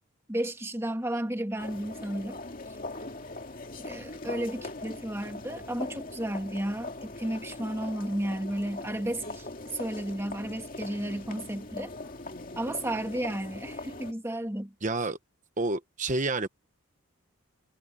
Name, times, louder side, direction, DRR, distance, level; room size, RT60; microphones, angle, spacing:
voice 1, 0.3-2.4 3.8-11.9 12.6-14.7, right 1 dB, 10° right, 1.9 m, -33 dB
sound 1, 1.6-14.1, left 2 dB, 40° left, 2.4 m, -41 dB
voice 2, 14.8-15.2 15.6-16.5, right 3 dB, 35° right, 1.0 m, -29 dB
head